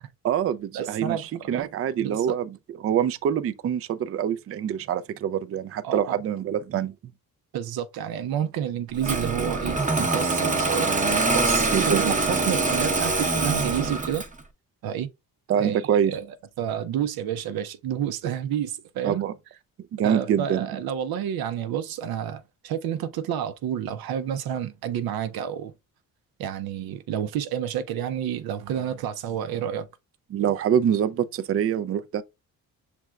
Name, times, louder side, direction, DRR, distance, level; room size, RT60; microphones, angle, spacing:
voice 1, 0.2-2.5 2.8-6.9 11.7-12.0 15.5-16.2 19.0-19.3 19.9-20.8 30.3-32.2, right 9 dB, 40° right, 0.4 m, -25 dB
voice 2, 0.7-1.5 2.0-2.4 5.8-6.2 7.5-10.9 11.3-14.2 14.8-15.1 15.6-15.8 16.1-16.2 16.6-19.2 20.0-25.7 26.4-29.9, right 9 dB, 90° right, 0.6 m, -29 dB
Engine starting, 9.0-14.4, right 3 dB, 20° right, 0.8 m, -24 dB
6.2 x 3.4 x 2.3 m
cardioid pair, 125°, 35 cm